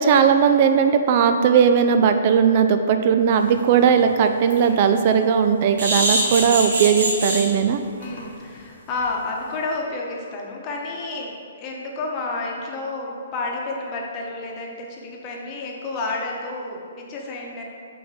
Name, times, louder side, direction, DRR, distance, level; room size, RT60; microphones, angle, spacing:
voice 1, 0.0-7.8, right 7 dB, 40° right, 7 dB, 0.3 m, -18 dB
sound 1, 3.5-3.6 4.0-4.1 4.5-4.6 5.8-7.4 8.0-8.2 8.5-8.6 8.9-9.0, right 1 dB, 65° right, 1.5 m, -23 dB
voice 2, 6.1-6.5 8.0-17.6, left 3 dB, 30° left, -1 dB, 1.0 m, -30 dB
5.7 x 3.9 x 4.8 m, 2.3 s
figure-of-eight pair, 125°, 0 cm